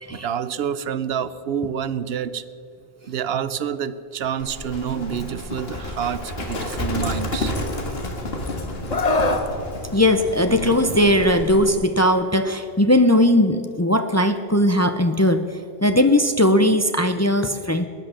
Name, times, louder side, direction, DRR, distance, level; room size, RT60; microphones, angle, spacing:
voice 1, 0.1-2.4 3.1-7.5, right 8 dB, 75° right, 15 dB, 0.9 m, -27 dB
Livestock farm animals working animals, 4.4-11.8, left 1 dB, 70° left, 2.0 m, -30 dB
Screaming, 8.9-9.5 10.9-11.2, left 2 dB, 40° left, 1.1 m, -22 dB
voice 2, 9.9-15.4 15.8-17.9, left 1 dB, 20° left, 8 dB, 0.5 m, -18 dB
19.0 x 10.5 x 6.4 m, 2.6 s
omnidirectional pair, 1.1 m